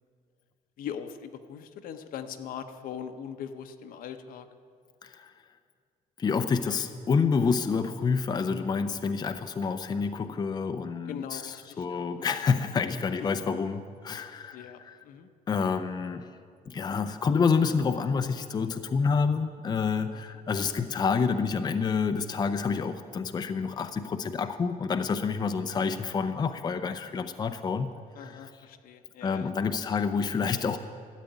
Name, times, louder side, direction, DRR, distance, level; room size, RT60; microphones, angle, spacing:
voice 1, 0.8-4.5 11.1-12.3 13.2-13.3 14.5-15.3 20.1-20.2 28.1-29.5 29.9-30.0, left 8 dB, 70° left, 7 dB, 0.9 m, -41 dB
voice 2, 6.2-14.7 15.5-16.3 16.7-27.9 28.2-28.3 29.2-30.8, left 5 dB, 25° left, 8 dB, 0.6 m, -28 dB
13.0 x 8.4 x 9.2 m, 2.2 s
cardioid pair, 125°, 15 cm